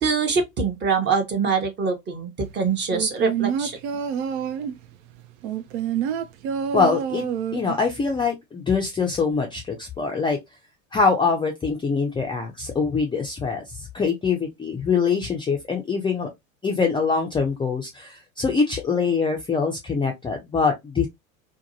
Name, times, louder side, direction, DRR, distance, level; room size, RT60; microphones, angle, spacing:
voice 1, 0.0-3.8, right 5 dB, 25° right, 0.8 m, -24 dB
sound 1, 2.9-4.8 5.4-7.8 8.2-8.3, right 8 dB, 50° right, 0.5 m, -27 dB
voice 2, 6.7-7.2 7.5-10.4 10.9-16.3 16.6-21.1, left 5 dB, 10° left, 0.5 m, -24 dB
2.7 x 2.2 x 2.6 m
figure-of-eight pair, 80°, 41 cm